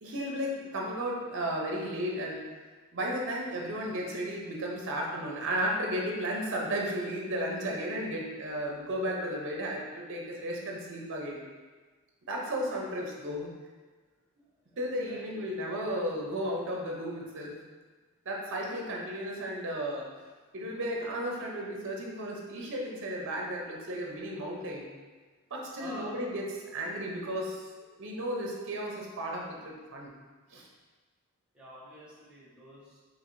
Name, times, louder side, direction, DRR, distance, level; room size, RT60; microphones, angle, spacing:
voice 1, 0.0-2.4 2.9-11.4 12.3-13.5 14.8-17.5 18.3-20.0 20.5-24.9 25.5-27.6 28.0-30.1 30.5-30.7, equal, 60° right, -1 dB, 0.7 m, -34 dB
voice 2, 14.6-15.6 20.2-20.3 20.6-20.7 25.8-26.3 31.5-33.0, equal, 5° right, -10 dB, 1.2 m, -48 dB
4.6 x 3.0 x 2.6 m, 1.3 s
head